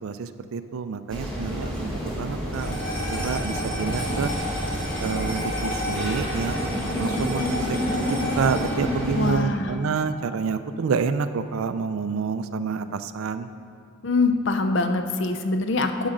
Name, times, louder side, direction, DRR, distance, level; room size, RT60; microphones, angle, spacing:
voice 1, 0.0-4.3 5.0-13.5, right 5 dB, 75° right, 11 dB, 0.4 m, -28 dB
sound 1, 1.1-9.3, equal, 5° left, 1.2 m, -29 dB
sound 2, 2.5-11.0, left 1 dB, 40° left, 1.5 m, -33 dB
voice 2, 9.2-9.7 14.0-16.1, left 3 dB, 55° left, 7 dB, 0.5 m, -24 dB
10.0 x 6.3 x 3.8 m, 2.3 s
head